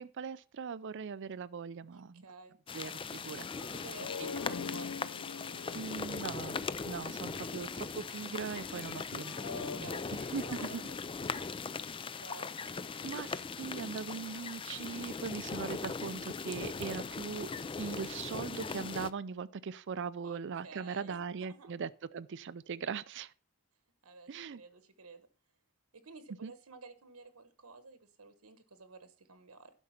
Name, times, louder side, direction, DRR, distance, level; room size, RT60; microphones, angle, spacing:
voice 1, 0.0-2.2 2.7-3.5 4.2-4.3 5.7-9.3 9.7-10.8 13.0-17.5 17.8-23.3 24.3-24.6 26.4-26.5, right 6 dB, 55° right, 0.4 m, -40 dB
voice 2, 1.9-2.6 3.6-6.3 7.4-7.5 9.5-10.1 10.4-13.1 20.2-21.7 24.0-25.3 25.9-29.7, right 3 dB, 85° right, 1.2 m, -53 dB
sound 1, 2.7-19.1, left 5 dB, 25° left, 0.4 m, -40 dB
sound 2, 3.4-7.7 8.6-9.8, left 5 dB, 90° left, 0.4 m, -44 dB
11.5 x 5.4 x 5.8 m
head